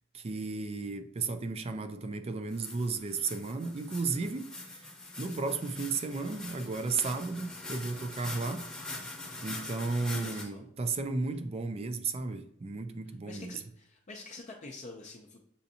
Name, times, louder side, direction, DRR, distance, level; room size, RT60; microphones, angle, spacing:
voice 1, 0.1-4.9 5.2-8.7 9.4-13.6, right 4 dB, 30° right, 0.4 m, -34 dB
sound 1, 2.5-10.4, left 2 dB, 5° left, 0.8 m, -43 dB
voice 2, 10.0-10.6 13.3-15.5, left 3 dB, 35° left, 0.5 m, -46 dB
6.9 x 2.6 x 2.7 m
head